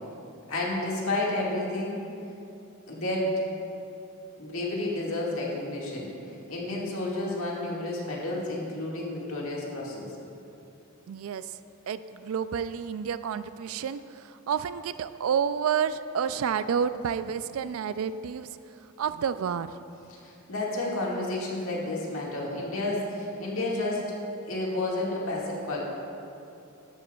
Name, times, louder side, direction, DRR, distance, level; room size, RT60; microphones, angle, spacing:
voice 1, 0.5-2.0 2.9-3.3 4.4-6.1 6.5-10.1 20.1-24.1 24.4-25.8, left 2 dB, 70° left, -4 dB, 1.9 m, -31 dB
voice 2, 11.1-11.5 11.9-18.5 19.0-19.7, right 7 dB, 75° right, 13 dB, 0.3 m, -29 dB
13.5 x 11.0 x 2.3 m, 2.8 s
head